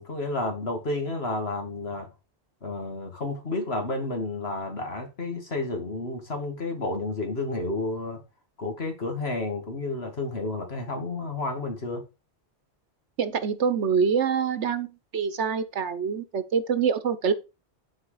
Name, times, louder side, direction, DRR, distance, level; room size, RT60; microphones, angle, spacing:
voice 1, 0.0-2.1 2.6-8.2 8.6-12.0, left 2 dB, 65° left, 2.4 m, -31 dB
voice 2, 13.2-17.3, right 6 dB, 90° right, 1.4 m, -25 dB
11.0 x 4.9 x 5.0 m
omnidirectional pair, 1.1 m